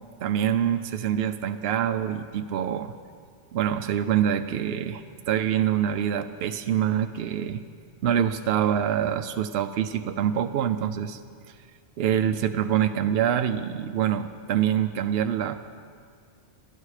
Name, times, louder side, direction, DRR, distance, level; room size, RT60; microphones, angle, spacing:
voice 1, 0.2-2.9 3.5-7.6 8.0-11.2 11.5-11.6 12.0-15.6, right 9 dB, 70° right, 8 dB, 0.8 m, -25 dB
21.5 x 12.5 x 4.9 m, 2.1 s
omnidirectional pair, 1.1 m